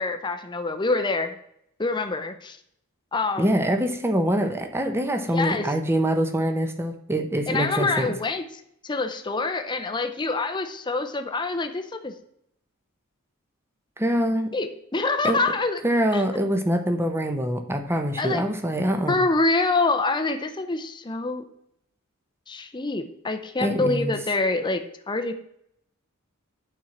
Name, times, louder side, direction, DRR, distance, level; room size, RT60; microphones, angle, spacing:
voice 1, 0.0-1.4 1.8-2.6 3.1-3.6 5.2-5.7 7.5-12.1 14.5-15.8 16.1-16.2 18.2-18.5 19.1-21.4 22.5-25.3, left 3 dB, 20° left, 6 dB, 0.7 m, -26 dB
voice 2, 3.4-8.1 14.0-14.5 15.2-15.4 15.8-19.2 23.6-24.1, equal, 10° right, 6 dB, 0.9 m, -24 dB
9.2 x 4.5 x 7.3 m, 0.74 s
head